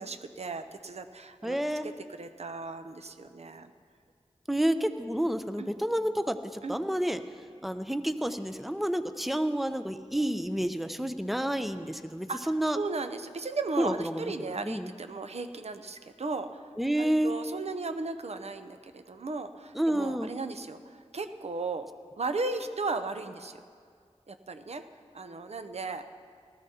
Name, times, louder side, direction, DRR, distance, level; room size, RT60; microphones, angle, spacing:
voice 1, 0.0-1.6 1.8-3.7 5.6-5.7 6.6-6.8 12.3-16.7 17.0-21.9 22.2-23.6 24.3-24.8 25.1-26.0, right 3 dB, 65° right, 8 dB, 0.6 m, -36 dB
voice 2, 1.4-1.9 4.5-7.2 7.6-12.8 13.8-14.9 16.8-17.3 19.7-20.3, right 1 dB, ahead, 9 dB, 0.6 m, -29 dB
19.0 x 14.0 x 2.8 m, 2.1 s
wide cardioid pair, 55°, 12 cm